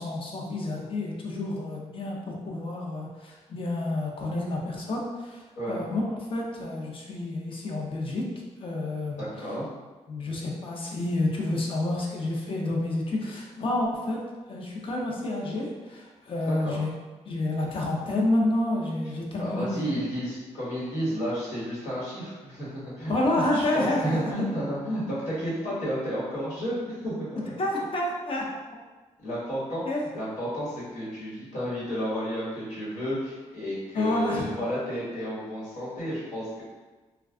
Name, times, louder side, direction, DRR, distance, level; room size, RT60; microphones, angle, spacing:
voice 1, 0.0-8.3 8.6-9.2 10.1-14.2 14.5-16.9 17.3-19.8 23.1-24.3 27.6-28.5 29.9-30.0 33.9-34.5, left 1 dB, 45° left, -2 dB, 0.6 m, -29 dB
voice 2, 9.2-9.7 16.5-16.8 19.4-27.6 29.2-29.8 30.1-36.6, equal, 85° left, -8 dB, 1.4 m, -32 dB
2.4 x 2.2 x 3.5 m, 1.3 s
cardioid pair, 100°, 12 cm